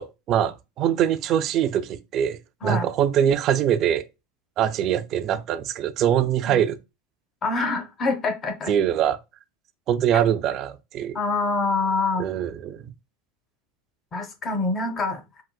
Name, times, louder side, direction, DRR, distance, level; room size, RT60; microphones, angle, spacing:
voice 1, 0.0-4.0 4.6-6.8 8.7-9.2 9.9-11.2 12.2-12.9, right 9 dB, 45° right, 0.3 m, -23 dB
voice 2, 7.4-8.7 10.1-10.2 11.1-12.3 14.1-15.2, left 3 dB, 30° left, 0.7 m, -25 dB
3.7 x 2.1 x 2.3 m
hypercardioid pair, 100°, 0 cm